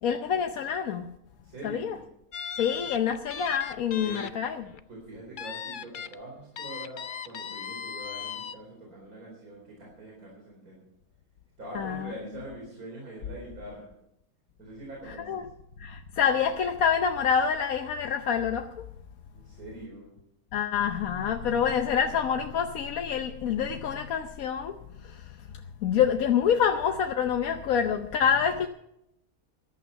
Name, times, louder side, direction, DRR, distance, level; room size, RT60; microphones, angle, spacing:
voice 1, 0.0-1.1 1.6-2.0 2.6-4.6 11.7-12.1 15.3-15.4 15.8-18.9 20.5-25.5 25.8-28.7, left 7 dB, 75° left, 1.2 m, -27 dB
voice 2, 1.4-2.0 4.0-4.3 4.9-10.8 11.6-13.9 14.6-15.4 19.3-20.1, right 1 dB, 80° right, 4.7 m, -43 dB
sound 1, 2.3-4.3 4.7-4.8 5.4-6.1 6.6-8.6, left 7 dB, 55° left, 0.6 m, -38 dB
14.5 x 12.0 x 5.6 m
omnidirectional pair, 1.5 m